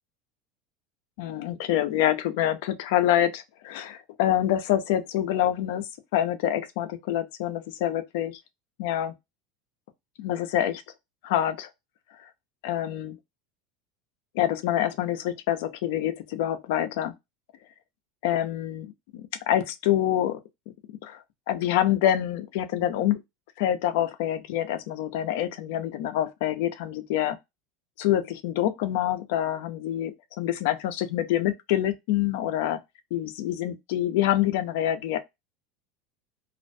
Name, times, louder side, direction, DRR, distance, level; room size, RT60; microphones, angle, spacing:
voice 1, 1.2-8.4 8.8-9.1 10.2-10.8 11.2-11.7 12.6-13.2 14.3-17.1 18.2-20.4 21.0-21.2 21.5-23.2 23.6-27.4 28.0-32.8 33.1-35.2, left 12 dB, 75° left, 0.5 m, -26 dB
2.4 x 2.1 x 2.5 m
supercardioid pair, 130°, 0 cm